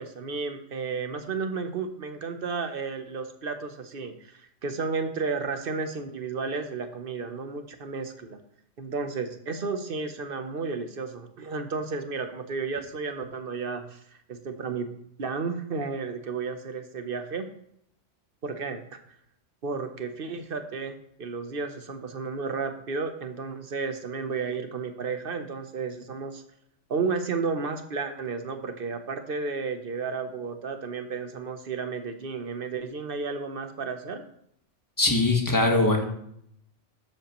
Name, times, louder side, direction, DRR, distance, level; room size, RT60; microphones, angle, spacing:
voice 1, 0.0-8.4 8.8-14.0 14.3-14.9 15.2-17.5 18.4-19.0 19.6-26.4 26.9-34.2, right 4 dB, 50° right, 7 dB, 1.0 m, -32 dB
voice 2, 35.0-36.0, left 2 dB, 15° left, 2 dB, 1.3 m, -21 dB
11.5 x 7.7 x 3.0 m, 0.71 s
omnidirectional pair, 1.3 m